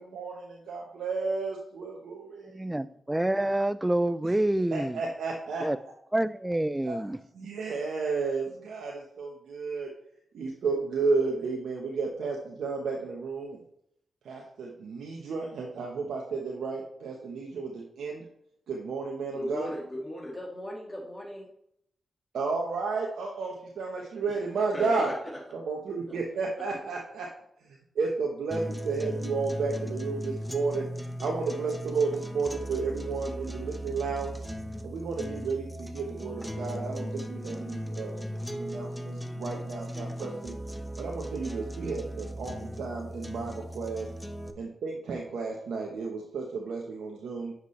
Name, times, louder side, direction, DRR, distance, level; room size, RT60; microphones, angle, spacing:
voice 1, 0.0-2.6 4.2-4.3 4.7-5.6 6.8-7.1 7.3-9.9 10.3-13.6 14.2-18.2 18.7-19.7 22.3-25.1 25.5-27.3 27.6-30.9 31.2-34.4 34.8-40.5 41.0-44.1 44.5-47.5, right 4 dB, 85° right, -1 dB, 1.1 m, -32 dB
voice 2, 2.5-5.0 5.6-5.8 6.1-7.2, right 1 dB, 15° right, 16 dB, 0.5 m, -27 dB
voice 3, 19.3-21.5 24.3-24.4 24.7-25.4 26.1-26.2 26.6-26.7, equal, 20° left, -2 dB, 2.0 m, -37 dB
sound 1, 28.5-44.5, equal, 5° left, 0.9 m, -37 dB
9.2 x 6.1 x 3.2 m, 0.73 s
cardioid pair, 55°, 0 cm